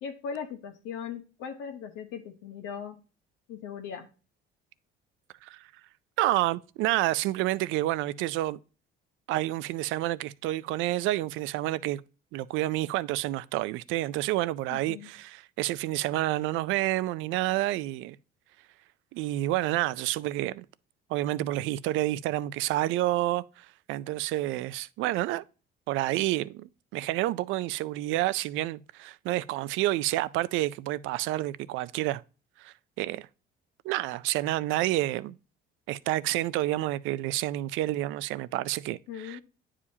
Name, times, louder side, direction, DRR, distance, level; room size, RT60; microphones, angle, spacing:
voice 1, 0.0-3.0 3.5-4.1 14.7-15.1 39.1-39.4, left 7 dB, 80° left, 0.9 m, -39 dB
voice 2, 6.2-8.6 9.3-12.0 12.3-18.2 19.1-20.7 21.1-25.4 25.9-32.2 32.6-33.3 33.8-35.4 35.9-39.4, right 16 dB, 80° right, 0.4 m, -29 dB
9.7 x 4.9 x 2.8 m
cardioid pair, 135°, 20 cm